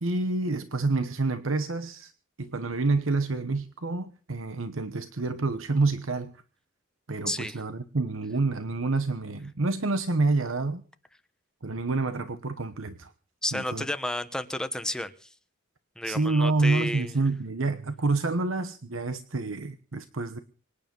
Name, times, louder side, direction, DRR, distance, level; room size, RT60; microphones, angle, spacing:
voice 1, 0.0-2.1 2.4-6.3 7.1-10.8 11.6-13.1 13.5-13.8 16.0-20.4, right 3 dB, 75° right, 1.1 m, -28 dB
voice 2, 7.3-7.6 13.4-15.3 16.0-17.1, left 1 dB, 5° left, 1.1 m, -31 dB
25.0 x 10.0 x 5.4 m
head